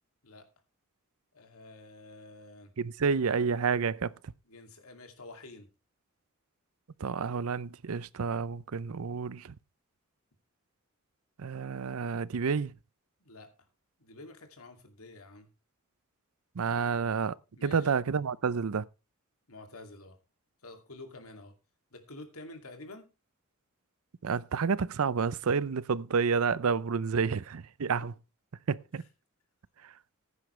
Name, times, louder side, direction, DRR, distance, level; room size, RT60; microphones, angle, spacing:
voice 1, 1.3-2.7 4.5-5.7 13.2-13.5 14.0-15.5 16.7-16.9 17.5-17.9 19.5-20.2 20.6-21.5 21.9-23.1, left 2 dB, 85° left, 2.5 m, -49 dB
voice 2, 2.8-4.3 7.0-9.5 11.4-12.7 16.5-17.4 17.6-18.8 24.2-28.1 28.7-29.0 29.8-29.9, right 5 dB, 80° right, 0.5 m, -29 dB
15.0 x 9.7 x 3.2 m
head